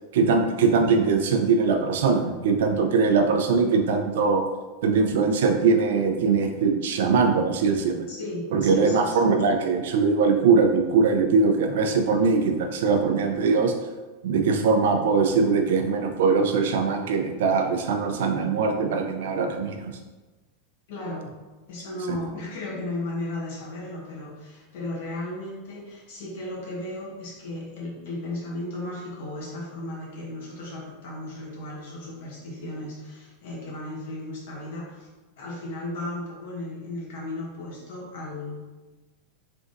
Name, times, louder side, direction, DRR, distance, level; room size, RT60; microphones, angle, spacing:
voice 1, 0.1-4.4 4.8-8.0 8.5-13.7 14.2-19.9, right 4 dB, 70° right, 4 dB, 0.5 m, -21 dB
voice 2, 8.1-9.4 20.9-21.3 21.7-35.1 35.4-38.6, left 1 dB, 60° left, -3 dB, 1.2 m, -35 dB
3.8 x 3.4 x 2.6 m, 1.2 s
supercardioid pair, 175°, 0 cm